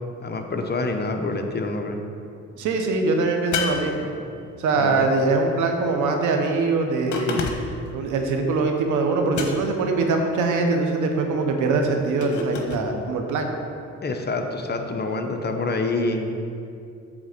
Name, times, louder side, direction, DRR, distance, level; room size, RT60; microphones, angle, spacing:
voice 1, 0.2-2.0 4.8-5.1 14.0-16.3, left 3 dB, 35° left, 4 dB, 0.8 m, -26 dB
voice 2, 2.6-4.1 4.6-7.4 7.9-13.5, right 3 dB, 80° right, 4 dB, 1.0 m, -22 dB
sound 1, 3.5-4.6 7.1-7.9 9.3-9.9 12.2-12.9, left 5 dB, 75° left, 1.0 m, -30 dB
8.6 x 3.6 x 6.7 m, 2.5 s
cardioid pair, 90°, 30 cm